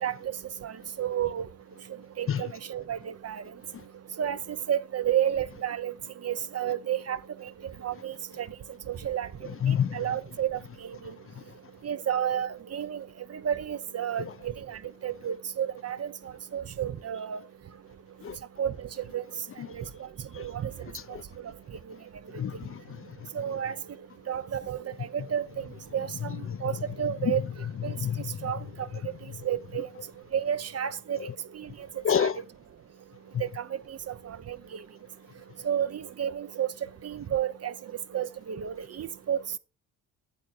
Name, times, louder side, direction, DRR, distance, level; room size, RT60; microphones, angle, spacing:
voice 1, 0.0-0.3 0.6-0.7 1.0-1.4 2.2-3.4 4.2-4.4 4.7-5.9 6.2-7.5 7.8-8.5 8.9-9.3 9.7-10.6 11.8-13.0 13.3-16.1 16.5-17.4 18.6-19.2 19.7-19.8 20.4-20.7 23.3-23.7 24.3-25.7 25.9-27.4 27.8-27.9 28.4-28.6 29.4-29.9 30.3-31.2 31.5-31.7 32.2-32.3 33.4-34.6 35.6-36.7 37.0-37.7 38.1-39.4, right 9 dB, 45° right, 0.9 m, -31 dB
voice 2, 9.4-10.0 14.2-14.3 18.2-18.4 19.6-19.7 20.3-20.5 20.9-21.2 22.3-23.0 26.5-26.7 27.2-27.4 28.0-28.5 31.2-31.3 32.0-32.4, left 8 dB, 40° left, 0.6 m, -29 dB
8.9 x 7.6 x 4.4 m
supercardioid pair, 65°, 35 cm